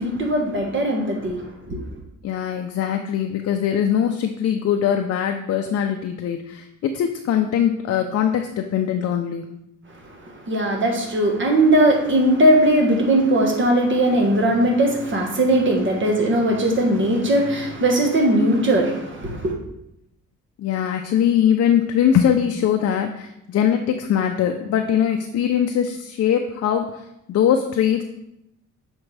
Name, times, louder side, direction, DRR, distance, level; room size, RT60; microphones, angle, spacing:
voice 1, 0.0-1.8 10.1-19.6, right 1 dB, 40° right, 1.4 m, -19 dB
voice 2, 2.2-9.5 20.6-28.0, left 9 dB, 55° left, 0.5 m, -21 dB
7.1 x 4.5 x 3.3 m
cardioid pair, 90°, 30 cm